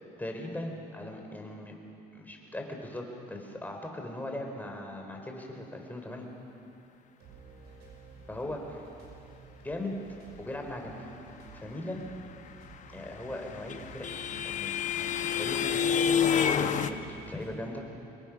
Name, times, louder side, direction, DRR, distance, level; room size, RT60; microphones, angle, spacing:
voice 1, 0.2-1.8 2.1-6.3 8.3-8.8 9.6-9.9 10.4-11.1 11.6-12.0 12.9-17.0 17.3-17.9, left 1 dB, 10° left, 2 dB, 4.0 m, -39 dB
sound 1, 1.8-2.0 2.3-6.6 7.2-17.5, right 5 dB, 90° right, 5.7 m, -54 dB
sound 2, 13.0-16.9, left 8 dB, 45° left, 0.9 m, -28 dB
26.0 x 22.0 x 6.1 m, 2.7 s
cardioid pair, 110°, 17 cm